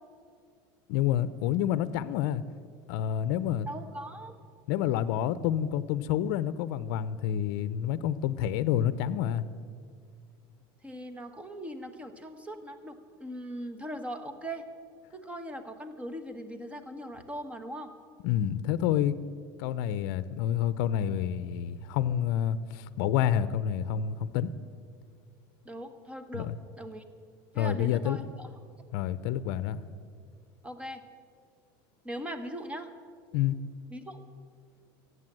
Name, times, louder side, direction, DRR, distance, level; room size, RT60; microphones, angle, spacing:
voice 1, 0.9-2.4 2.9-3.7 4.7-9.4 18.2-19.1 19.6-24.5 26.3-26.5 27.5-28.2 28.9-29.8 33.3-33.6, left 10 dB, 70° left, 15 dB, 0.6 m, -28 dB
voice 2, 3.7-4.4 10.8-14.7 15.1-17.9 25.6-26.5 26.8-27.0 27.5-28.5 30.6-31.0 32.0-32.9 33.9-34.2, equal, 10° right, 9 dB, 1.2 m, -40 dB
15.0 x 8.1 x 7.6 m, 2.1 s
supercardioid pair, 110°, 11 cm